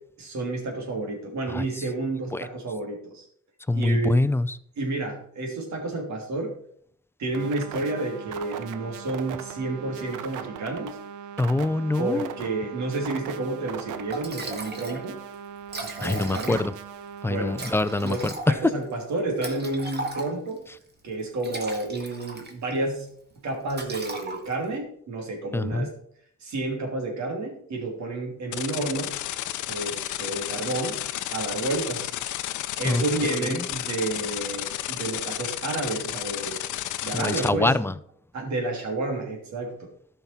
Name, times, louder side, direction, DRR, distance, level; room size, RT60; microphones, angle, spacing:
voice 1, 0.2-3.3 3.7-4.2 4.8-6.5 7.2-11.0 12.0-15.2 15.8-16.6 17.3-17.6 18.0-20.6 21.0-23.1 23.4-25.9 26.4-29.2 29.7-31.0 31.3-32.1 32.8-36.6 37.0-37.8 38.3-39.9, right 2 dB, 65° right, 2 dB, 3.0 m, -30 dB
voice 2, 3.7-4.5 11.4-12.3 16.0-16.7 17.2-18.3 25.5-25.9 32.8-33.0 33.6-33.7 37.1-37.9, left 2 dB, 10° left, 14 dB, 0.5 m, -24 dB
sound 1, 7.3-18.3, right 8 dB, 85° right, 0.8 m, -39 dB
Liquid, 13.8-13.9 14.1-15.0 15.3-15.4 15.6-16.9 17.5-20.6 21.2-22.8 23.1-23.3 23.7-24.7, right 2 dB, 35° right, 1.9 m, -37 dB
sound 2, 28.5-37.5, left 13 dB, 75° left, 0.6 m, -32 dB
12.5 x 5.9 x 4.4 m, 0.65 s
cardioid pair, 90°, 30 cm